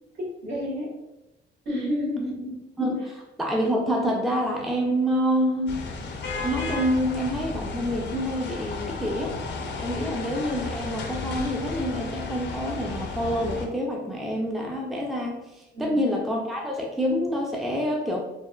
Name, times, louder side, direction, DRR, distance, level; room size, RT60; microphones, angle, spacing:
voice 1, 0.2-0.9 1.6-2.6 9.9-10.1 15.7-16.0, left 1 dB, 60° right, -5 dB, 1.3 m, -30 dB
voice 2, 2.8-5.8 6.0-6.1 6.4-9.4 9.8-15.4 15.8-18.2, equal, ahead, -1 dB, 0.4 m, -27 dB
sound 1, 5.7-13.7, left 3 dB, 65° left, 0.5 m, -33 dB
3.3 x 2.2 x 2.2 m, 0.95 s
cardioid pair, 90°, 20 cm